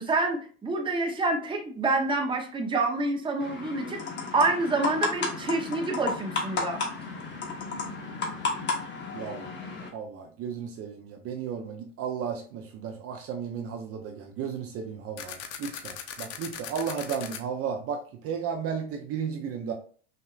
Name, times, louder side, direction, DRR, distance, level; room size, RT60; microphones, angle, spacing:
voice 1, 0.0-4.0 4.3-6.8, right 3 dB, 15° right, 2 dB, 0.9 m, -27 dB
sound 1, 3.4-9.9, left 4 dB, 30° left, 1.3 m, -33 dB
voice 2, 9.1-9.5 9.9-19.7, right 7 dB, 45° right, 3 dB, 0.7 m, -34 dB
sound 2, 15.2-17.4, left 8 dB, 50° left, 0.7 m, -38 dB
5.6 x 2.6 x 2.4 m, 0.43 s
supercardioid pair, 105°, 33 cm